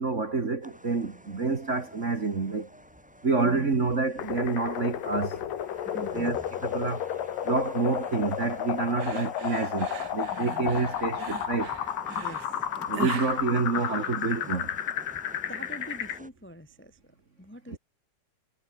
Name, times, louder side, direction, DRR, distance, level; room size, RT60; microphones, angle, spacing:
voice 1, 0.0-2.7 3.2-5.4 5.9-7.0 7.4-11.7 12.8-14.7 17.7-17.8, right 4 dB, 35° right, 1.2 m, -28 dB
sound 1, 0.6-16.3, equal, ahead, 4.3 m, -49 dB
voice 2, 3.4-3.8 5.8-6.5 10.3-10.7 12.1-12.5 15.5-17.0 17.4-17.8, equal, 20° left, 0.3 m, -44 dB
sound 2, 4.2-16.2, left 10 dB, 85° left, 3.5 m, -32 dB
sound 3, 9.0-14.5, right 8 dB, 65° right, 1.0 m, -40 dB
omnidirectional pair, 3.8 m